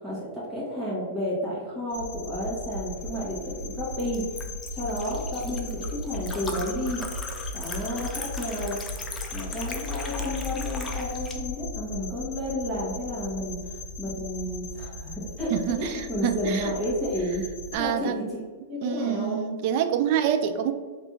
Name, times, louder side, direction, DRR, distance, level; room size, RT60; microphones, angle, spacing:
voice 1, 0.0-4.4 4.7-7.0 7.5-8.8 9.3-13.6 14.0-15.5 15.8-17.4 17.8-18.4 18.7-19.4, left 1 dB, 5° right, -10 dB, 1.3 m, -31 dB
sound 1, 1.9-17.8, left 2 dB, 50° left, 0.7 m, -36 dB
Liquid, 3.0-11.3, left 3 dB, 15° left, 0.5 m, -40 dB
voice 2, 15.5-16.7 17.7-18.2 18.8-20.7, right 9 dB, 50° right, 8 dB, 0.4 m, -26 dB
3.2 x 2.6 x 4.5 m, 1.5 s
hypercardioid pair, 125°, 0 cm